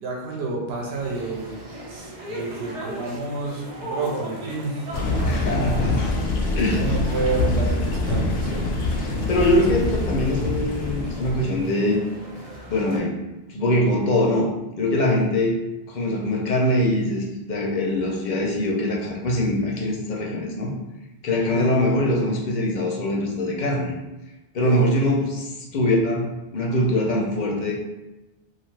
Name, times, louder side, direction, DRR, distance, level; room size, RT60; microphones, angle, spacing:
voice 1, 0.0-1.5 1.9-4.9 5.2-5.8 6.7-8.6 9.3-9.8 21.5-21.7 24.6-25.0, right 3 dB, 85° right, -1 dB, 0.8 m, -30 dB
sound 1, 0.9-13.0, right 1 dB, 50° right, 0.8 m, -38 dB
sound 2, 4.9-11.7, left 2 dB, 85° left, 0.8 m, -25 dB
voice 2, 5.2-6.1 6.6-6.9 9.3-12.0 12.7-13.2 13.5-14.5 14.8-15.6 15.9-20.7 21.2-23.9 24.5-27.7, left 1 dB, 55° left, -1 dB, 0.6 m, -23 dB
2.5 x 2.3 x 3.1 m, 1.0 s
omnidirectional pair, 1.0 m